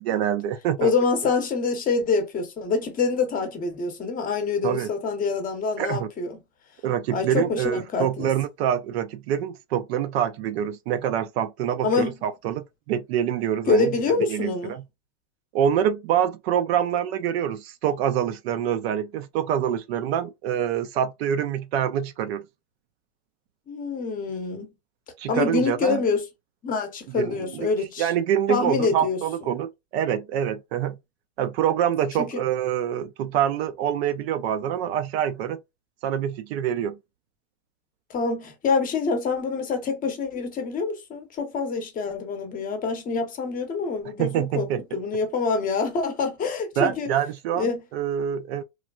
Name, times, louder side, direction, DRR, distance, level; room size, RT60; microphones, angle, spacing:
voice 1, 0.0-0.9 4.6-4.9 5.8-6.1 6.8-13.9 14.3-14.8 15.5-22.4 25.2-26.0 27.1-27.7 28.0-31.0 31.4-35.6 36.0-37.0 44.2-44.8 46.8-48.6, right 9 dB, 55° right, 0.4 m, -26 dB
voice 2, 0.8-6.4 7.1-8.3 11.8-12.2 13.7-14.8 23.7-24.7 25.3-26.2 26.6-28.1 28.5-29.2 32.2-32.4 38.1-44.7 44.9-47.1 47.5-47.8, left 4 dB, 20° left, 0.7 m, -26 dB
3.1 x 2.2 x 2.3 m
supercardioid pair, 130°, 38 cm